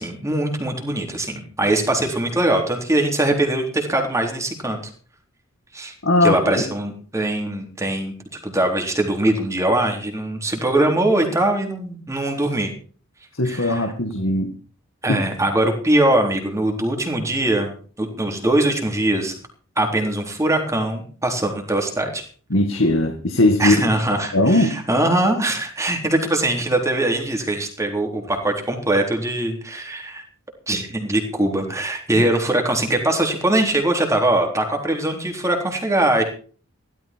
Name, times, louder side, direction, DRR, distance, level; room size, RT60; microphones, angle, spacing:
voice 1, 0.0-4.8 5.7-5.9 6.2-8.1 8.4-12.7 13.4-13.9 15.0-17.7 18.0-19.4 19.8-22.2 23.6-30.2 30.7-36.2, right 1 dB, 15° right, 3 dB, 3.8 m, -21 dB
voice 2, 6.0-6.4 13.4-14.5 15.1-15.2 22.5-23.8 24.3-24.8, left 2 dB, 70° left, 4 dB, 2.0 m, -18 dB
16.5 x 13.5 x 4.6 m, 0.42 s
head